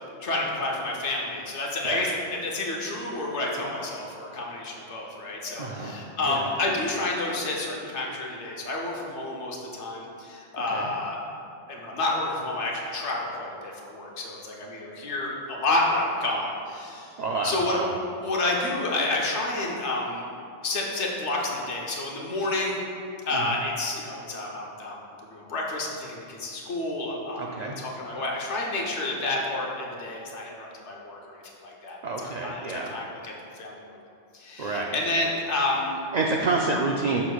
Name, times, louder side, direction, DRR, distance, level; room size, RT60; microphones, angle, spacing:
voice 1, 0.2-2.2 2.4-11.2 11.7-17.2 17.4-17.8 18.2-20.3 20.6-22.8 23.3-25.0 25.3-33.7 34.3-36.0, left 2 dB, 70° left, -2 dB, 1.2 m, -30 dB
voice 2, 5.6-6.0 6.2-6.5 10.7-10.9 17.2-17.9 23.3-23.6 27.4-27.8 32.0-32.9 34.6-35.0 36.1-37.2, right 3 dB, 85° right, 0 dB, 0.3 m, -28 dB
7.1 x 6.1 x 2.3 m, 2.5 s
omnidirectional pair, 1.2 m